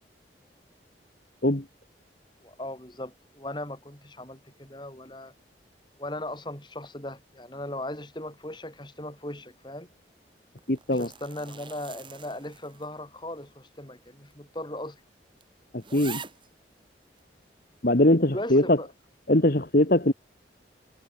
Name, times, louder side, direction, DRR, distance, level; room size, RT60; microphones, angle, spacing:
voice 1, 2.4-5.3 6.0-9.9 10.9-15.0 18.3-18.9, left 1 dB, 25° left, 5.5 m, -38 dB
sound 1, 10.6-13.1 13.4-13.5 14.3-14.4 14.8-14.9 15.4-15.5 15.8-16.5 17.2-17.3, right 6 dB, 25° right, 4.8 m, -44 dB
voice 2, 10.7-11.1 15.9-16.2 17.8-18.8 19.3-20.1, left 1 dB, 50° left, 2.0 m, -21 dB
head